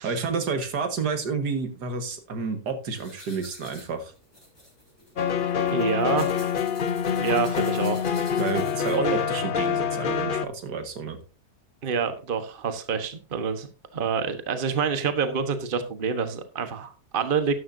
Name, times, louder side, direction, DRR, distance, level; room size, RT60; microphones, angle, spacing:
voice 1, 0.0-4.1 8.4-11.2, right 5 dB, 80° right, 7 dB, 2.2 m, -30 dB
sound 1, 2.9-9.2, left 1 dB, 15° left, 5.4 m, -48 dB
sound 2, 5.2-10.5, left 7 dB, 50° left, 0.6 m, -26 dB
voice 2, 5.7-6.3 7.1-8.0 8.9-9.2 11.8-13.7 13.9-17.5, right 6 dB, 35° right, 9 dB, 1.3 m, -27 dB
12.5 x 11.0 x 2.7 m, 0.33 s
omnidirectional pair, 1.7 m